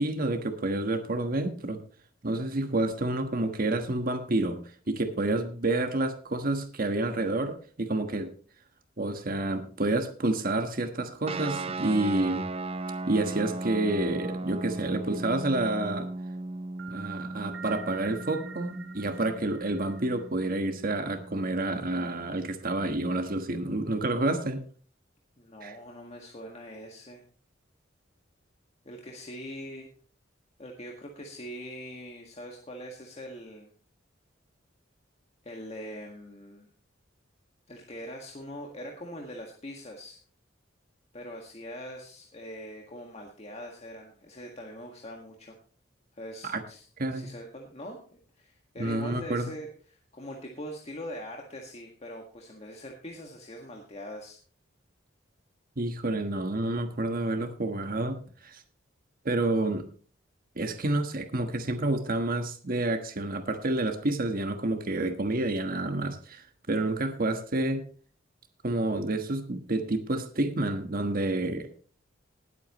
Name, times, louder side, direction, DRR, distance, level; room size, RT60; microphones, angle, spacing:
voice 1, 0.0-1.8 2.2-4.6 4.9-8.3 9.0-12.5 13.1-16.1 16.9-24.6 25.6-25.8 46.4-46.6 47.0-47.3 48.8-49.5 55.8-58.6 59.2-59.9 60.6-67.8 68.6-71.7, right 2 dB, 50° right, 6 dB, 1.3 m, -29 dB
sound 1, 11.3-22.2, right 2 dB, 30° right, 0.6 m, -37 dB
sound 2, 14.3-15.6 16.8-20.3, right 7 dB, 85° right, 1.5 m, -46 dB
voice 2, 25.4-27.2 28.8-29.9 30.6-33.7 35.4-36.7 37.7-40.2 41.1-45.6 46.1-46.8 47.1-54.4, equal, 35° left, 0 dB, 1.8 m, -42 dB
20.0 x 8.4 x 3.1 m, 0.42 s
head